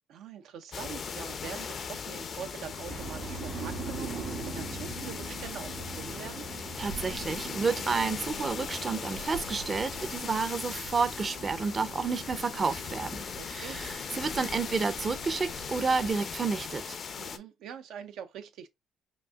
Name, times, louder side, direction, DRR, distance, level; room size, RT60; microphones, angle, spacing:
voice 1, 0.1-6.5 13.3-13.8 17.2-18.7, right 8 dB, 80° right, 0.6 m, -43 dB
sound 1, 0.7-17.4, left 6 dB, 55° left, 0.6 m, -39 dB
sound 2, 2.9-16.1, right 4 dB, 65° right, 1.5 m, -42 dB
voice 2, 6.8-17.0, right 4 dB, 40° right, 0.6 m, -30 dB
5.2 x 2.5 x 2.4 m
supercardioid pair, 75°, 0 cm